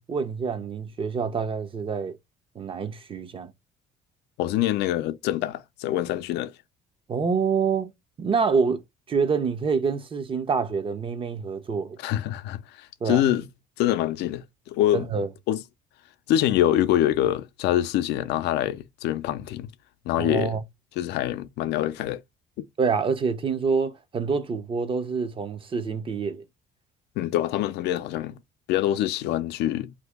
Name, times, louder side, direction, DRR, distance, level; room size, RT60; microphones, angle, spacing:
voice 1, 0.0-2.2 2.6-3.5 7.1-7.9 8.2-8.8 9.1-12.0 13.0-13.2 14.9-15.3 20.2-20.6 22.8-26.4, right 5 dB, 30° right, 0.6 m, -26 dB
voice 2, 4.4-6.5 12.0-13.5 13.8-15.1 15.5-15.6 16.3-19.7 20.1-20.5 21.0-22.2 22.6-22.7 27.2-28.4 28.7-29.9, left 12 dB, 80° left, 0.5 m, -25 dB
2.7 x 2.7 x 3.3 m
cardioid pair, 110°, 17 cm